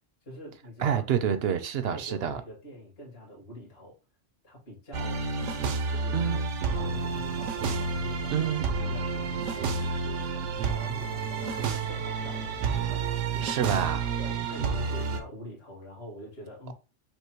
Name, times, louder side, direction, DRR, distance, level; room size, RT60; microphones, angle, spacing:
voice 1, 0.2-1.1 1.9-4.0 4.4-5.3 5.9-13.8 14.2-16.7, equal, 55° left, 1.8 m, -45 dB
voice 2, 0.8-2.4 6.1-6.4 8.3-8.7 13.4-14.1, right 8 dB, 65° right, 0.7 m, -27 dB
sound 1, 4.9-15.2, right 5 dB, 85° right, 1.0 m, -30 dB
sound 2, 6.8-13.2, left 2 dB, 75° left, 1.4 m, -49 dB
5.4 x 2.0 x 4.4 m
omnidirectional pair, 1.2 m